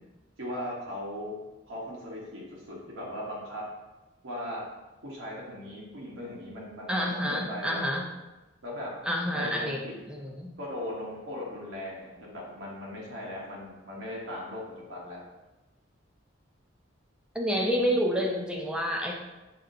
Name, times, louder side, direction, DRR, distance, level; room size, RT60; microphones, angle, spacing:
voice 1, 0.4-1.4 1.7-3.6 4.2-4.6 5.0-7.8 8.6-8.9 9.3-9.9 10.6-15.2, left 1 dB, 90° right, -4 dB, 0.9 m, -38 dB
voice 2, 6.9-8.1 9.1-9.8 10.1-10.5 17.3-19.1, equal, 5° right, 1 dB, 0.4 m, -28 dB
5.6 x 2.4 x 2.5 m, 1.1 s
head